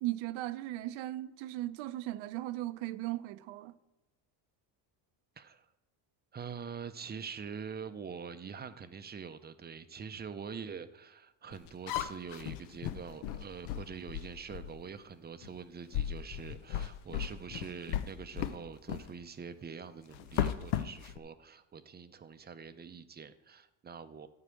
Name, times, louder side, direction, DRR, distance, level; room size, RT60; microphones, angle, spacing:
voice 1, 0.0-3.7, right 16 dB, 80° right, 0.7 m, -37 dB
voice 2, 5.4-5.7 6.3-24.3, right 6 dB, 20° right, 0.5 m, -45 dB
sound 1, 11.5-14.8 15.4-15.6 15.9-18.6 18.9-19.1 20.1-21.2, left 10 dB, 90° left, 0.8 m, -36 dB
13.5 x 4.9 x 7.7 m
cardioid pair, 125°, 48 cm